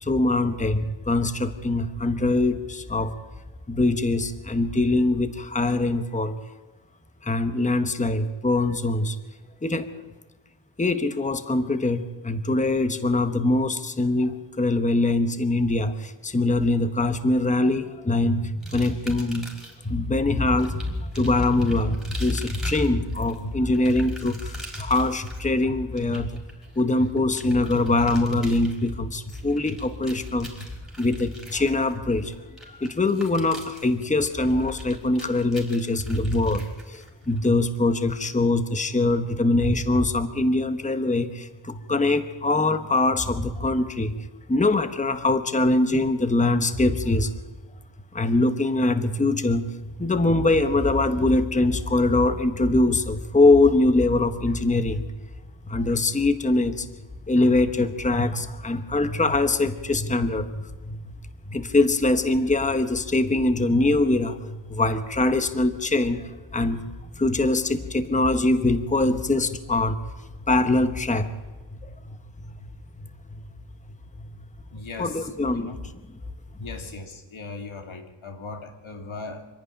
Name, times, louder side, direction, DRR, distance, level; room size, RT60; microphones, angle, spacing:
voice 1, 0.0-3.2 3.7-6.4 7.2-9.2 9.6-9.9 10.8-19.5 19.8-26.4 26.7-30.7 31.0-32.3 32.6-44.1 44.5-47.3 48.1-55.1 55.7-56.9 57.3-61.1 61.5-66.8 67.2-70.0 70.5-71.3 71.8-72.2 72.4-72.7 73.3-73.4 74.2-74.3 74.7-75.9, left 2 dB, 15° left, 9 dB, 1.0 m, -23 dB
sound 1, 18.6-19.9 20.6-37.5, right 1 dB, ahead, 5.5 m, -44 dB
voice 2, 74.7-75.3 75.6-75.8 76.6-79.5, left 3 dB, 90° left, 5 dB, 2.5 m, -38 dB
26.0 x 11.0 x 10.0 m, 1.2 s
wide cardioid pair, 125°, 47 cm